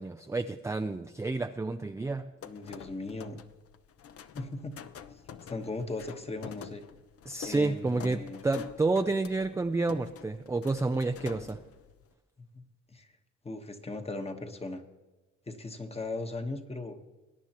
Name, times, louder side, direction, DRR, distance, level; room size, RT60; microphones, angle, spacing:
voice 1, 0.0-2.3 7.3-11.6, right 3 dB, 10° right, 6 dB, 0.4 m, -30 dB
sound 1, 2.4-12.1, left 8 dB, 50° left, 0.7 m, -47 dB
voice 2, 2.4-3.4 4.3-4.8 5.5-6.8 7.4-8.4 12.5-12.6 12.9-13.1 13.4-14.8 15.5-17.0, left 2 dB, 20° left, 6 dB, 1.2 m, -38 dB
21.0 x 9.8 x 3.0 m, 1.2 s
cardioid pair, 90°, 30 cm